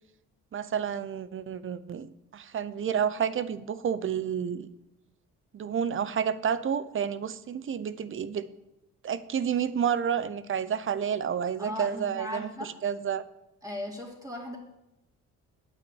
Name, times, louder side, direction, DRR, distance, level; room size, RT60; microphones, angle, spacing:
voice 1, 0.5-4.7 5.5-8.5 9.0-13.2, right 8 dB, 45° right, 14 dB, 0.7 m, -30 dB
voice 2, 11.6-12.7 13.6-14.6, left 1 dB, 10° right, -1 dB, 3.0 m, -37 dB
9.1 x 5.7 x 8.0 m, 0.89 s
cardioid pair, 90°, 30 cm